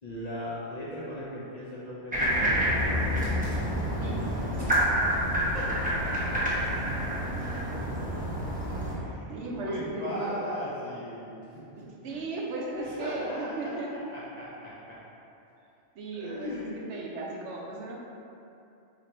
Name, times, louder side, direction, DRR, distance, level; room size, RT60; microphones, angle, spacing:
voice 1, 0.0-3.1 4.6-4.9 5.5-7.4 8.9-11.6 12.1-12.2 12.7-15.0 15.6-15.7 16.1-16.9, equal, 50° left, -9 dB, 0.5 m, -38 dB
sound 1, 2.1-8.9, equal, 10° right, 0.5 m, -28 dB
voice 2, 9.3-10.4 12.0-13.3 13.6-13.9 16.0-16.5 16.9-18.0, right 3 dB, 75° right, -3 dB, 0.9 m, -36 dB
3.1 x 2.5 x 4.1 m, 2.8 s
omnidirectional pair, 1.2 m